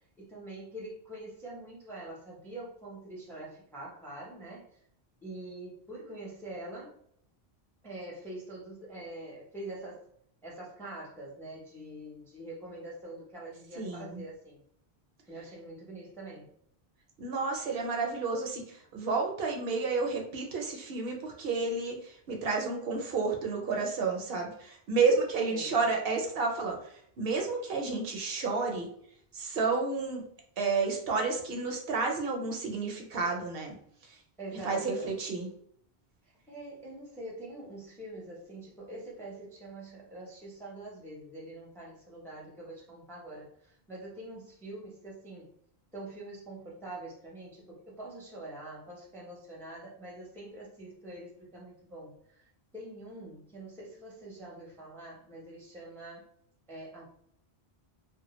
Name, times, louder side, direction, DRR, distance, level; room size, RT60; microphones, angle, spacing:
voice 1, 0.2-4.7 5.2-6.9 7.8-10.0 10.4-14.6 15.3-16.5 25.5-25.8 34.4-35.1 36.5-45.5 45.9-52.5 52.7-56.3 56.7-57.0, right 1 dB, 5° left, -3 dB, 0.5 m, -44 dB
voice 2, 13.8-14.2 17.2-28.9 29.3-30.2 30.6-33.7 34.6-35.5, right 4 dB, 70° right, 2 dB, 0.7 m, -31 dB
2.2 x 2.1 x 2.9 m, 0.65 s
omnidirectional pair, 1.1 m